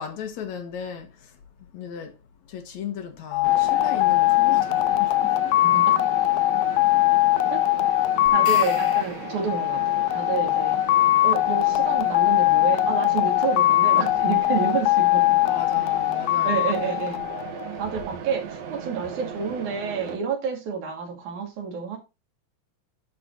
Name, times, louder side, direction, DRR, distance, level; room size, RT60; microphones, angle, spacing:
voice 1, 0.0-1.3 1.6-2.2 2.5-5.5 15.5-16.6, left 7 dB, 70° left, 2.6 m, -36 dB
sound 1, 3.3-17.8, left 16 dB, 85° left, 2.0 m, -21 dB
Mechanisms, 3.4-20.1, right 7 dB, 65° right, 2.4 m, -38 dB
voice 2, 5.6-6.1 7.5-7.6 8.3-10.8 11.2-15.4 16.4-17.3 17.8-22.0, right 6 dB, 85° right, 3.7 m, -29 dB
sound 2, 8.3-9.8, left 2 dB, 35° left, 0.4 m, -40 dB
11.5 x 4.4 x 4.0 m
omnidirectional pair, 3.4 m